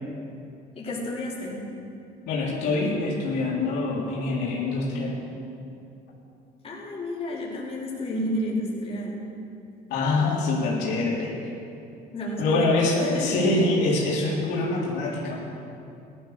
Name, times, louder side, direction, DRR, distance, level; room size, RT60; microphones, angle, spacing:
voice 1, 0.7-1.7 6.6-9.2 12.1-13.5, left 1 dB, 35° left, -5 dB, 4.3 m, -31 dB
voice 2, 2.3-5.2 9.9-11.5 12.4-15.4, left 2 dB, 90° left, -5 dB, 3.7 m, -25 dB
16.5 x 12.5 x 6.8 m, 2.6 s
cardioid pair, 110°, 17 cm